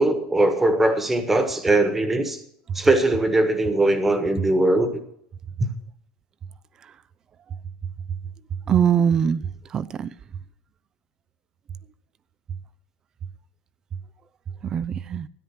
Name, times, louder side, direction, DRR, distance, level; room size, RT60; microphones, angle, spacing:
voice 1, 0.0-2.4 2.7-4.9 5.6-5.7, right 2 dB, 10° right, 1.4 m, -20 dB
voice 2, 8.7-10.1 14.6-15.3, right 8 dB, 25° right, 0.5 m, -22 dB
13.5 x 10.0 x 5.9 m
supercardioid pair, 145°, 2 cm